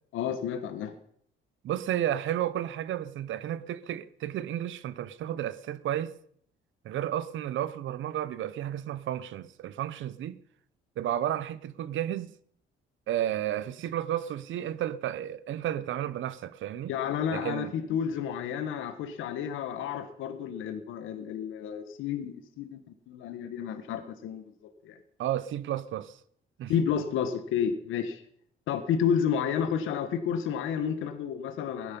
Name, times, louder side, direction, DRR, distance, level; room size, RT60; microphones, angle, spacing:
voice 1, 0.1-0.9 16.9-22.8 23.1-24.4 24.8-25.0 26.7-28.2 28.7-32.0, left 8 dB, 90° left, 1.4 m, -31 dB
voice 2, 1.6-6.1 6.8-10.4 11.0-12.3 13.1-16.9 17.3-17.7 25.2-26.2 26.6-26.7, right 11 dB, 75° right, 0.8 m, -32 dB
16.0 x 10.5 x 5.5 m
cardioid pair, 90°, 20 cm